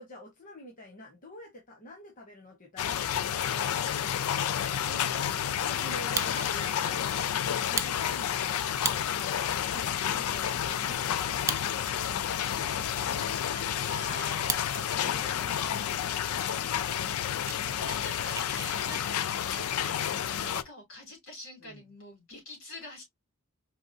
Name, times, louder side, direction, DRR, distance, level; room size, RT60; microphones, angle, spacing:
voice 1, 0.0-10.6 10.8-14.4 15.1-18.4 21.6-21.8, left 1 dB, 40° left, 1.0 m, -47 dB
sound 1, 2.8-20.6, left 9 dB, 85° left, 0.4 m, -30 dB
Fire, 5.9-6.7 7.1-7.2 7.6-9.3 9.9-10.0 10.1-10.6 11.3-12.1 12.4-12.5 13.1-14.8 15.2-15.6 16.2-16.3 16.5-16.7 17.0-18.7, right 5 dB, 15° right, 0.3 m, -37 dB
voice 2, 6.1-6.9 13.9-15.7 17.8-23.0, left 2 dB, 65° left, 3.3 m, -45 dB
4.7 x 3.3 x 2.6 m
head